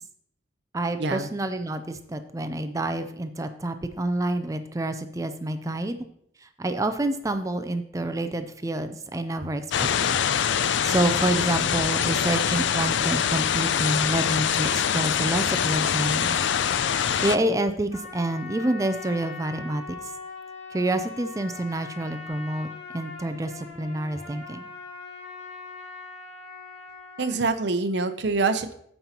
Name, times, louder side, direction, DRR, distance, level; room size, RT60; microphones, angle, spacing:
voice 1, 0.7-6.1 6.4-10.2 10.8-16.4 17.2-19.8 20.7-22.7 22.9-24.6, right 1 dB, 15° right, 9 dB, 0.4 m, -28 dB
sound 1, 9.7-17.4, left 8 dB, 70° left, 0.4 m, -24 dB
Trumpet, 17.9-27.4, left 4 dB, 85° left, 2.2 m, -41 dB
voice 2, 27.2-28.7, right 3 dB, 60° right, 10 dB, 0.7 m, -25 dB
14.5 x 5.4 x 2.9 m, 0.69 s
head